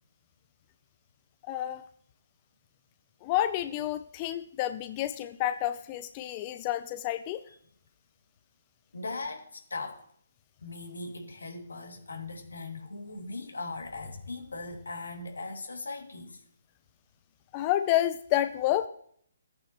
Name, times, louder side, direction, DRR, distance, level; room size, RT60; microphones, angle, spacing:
voice 1, 1.5-1.8 3.2-7.4 17.5-18.9, left 13 dB, 30° left, 0.5 m, -29 dB
voice 2, 8.9-10.1 10.6-16.4, left 3 dB, 90° left, 2.3 m, -39 dB
14.5 x 8.7 x 3.0 m
hypercardioid pair, 150°, 0 cm